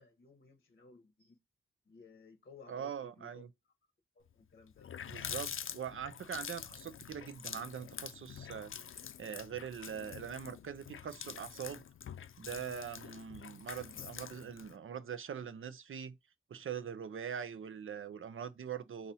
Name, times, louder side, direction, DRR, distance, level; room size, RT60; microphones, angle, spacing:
voice 1, 0.0-1.4 1.8-3.7 4.1-4.9, left 4 dB, 50° left, 0.8 m, -58 dB
voice 2, 2.7-3.5 5.1-8.7 9.2-11.8 12.4-16.2 16.5-19.1, right 8 dB, 75° right, 0.6 m, -42 dB
Water tap faucet, 4.3-4.4 4.7-14.8, left 8 dB, 70° left, 0.4 m, -46 dB
4.1 x 2.5 x 4.1 m
wide cardioid pair, 90°, 21 cm